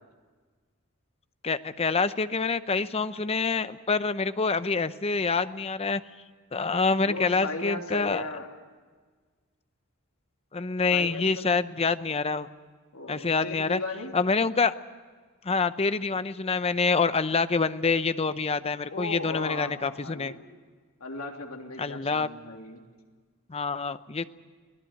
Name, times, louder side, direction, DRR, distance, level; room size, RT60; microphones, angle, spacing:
voice 1, 1.4-6.0 6.5-8.3 10.5-12.5 13.1-13.8 14.1-14.7 15.4-20.4 21.8-22.3 23.5-24.2, left 4 dB, 30° left, 12 dB, 0.7 m, -26 dB
voice 2, 7.0-8.5 10.9-11.6 12.9-14.1 18.9-20.4 21.0-22.8, left 2 dB, 75° left, 2 dB, 3.0 m, -37 dB
24.0 x 18.0 x 9.0 m, 1.5 s
head